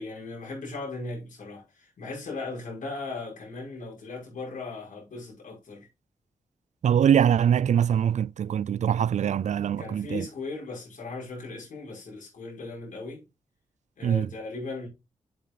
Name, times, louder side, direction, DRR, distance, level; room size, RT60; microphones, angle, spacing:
voice 1, 0.0-5.9 9.8-13.2 14.0-14.9, left 3 dB, 75° left, 6.0 m, -37 dB
voice 2, 6.8-10.3 14.0-14.3, right 9 dB, 60° right, 0.4 m, -23 dB
7.5 x 7.4 x 3.9 m
cardioid pair, 50°, 13 cm